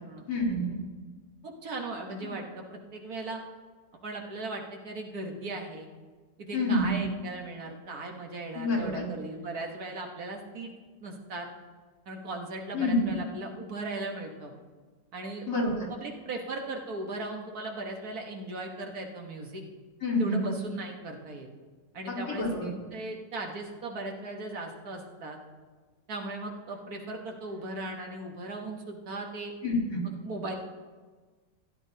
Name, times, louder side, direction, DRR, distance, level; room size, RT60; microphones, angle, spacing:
voice 1, 0.3-0.8 6.5-7.0 8.5-9.0 12.7-13.1 15.5-15.9 20.0-20.5 22.1-22.7 29.6-30.0, left 1 dB, 75° left, -6 dB, 3.9 m, -28 dB
voice 2, 1.4-3.4 4.0-5.9 6.4-10.7 11.0-11.5 12.1-14.5 15.1-15.5 15.9-19.6 20.2-21.5 21.9-25.4 26.1-29.5 30.0-30.5, right 2 dB, 60° right, 2 dB, 1.7 m, -38 dB
16.0 x 10.5 x 2.8 m, 1.4 s
omnidirectional pair, 1.8 m